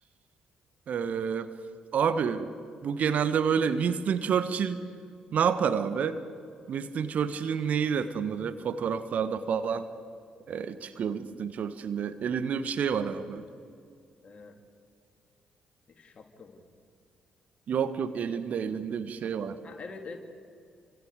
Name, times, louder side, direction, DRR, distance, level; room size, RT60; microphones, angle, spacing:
voice 1, 0.9-1.5 1.9-2.5 2.8-4.8 5.3-6.2 6.7-9.9 10.5-13.4 17.7-19.6, right 7 dB, 55° right, 11 dB, 1.3 m, -29 dB
voice 2, 14.2-14.6 15.9-16.6 19.6-20.2, left 4 dB, 40° left, 4 dB, 3.2 m, -45 dB
29.0 x 26.0 x 5.1 m, 2.3 s
figure-of-eight pair, 40°, 3 cm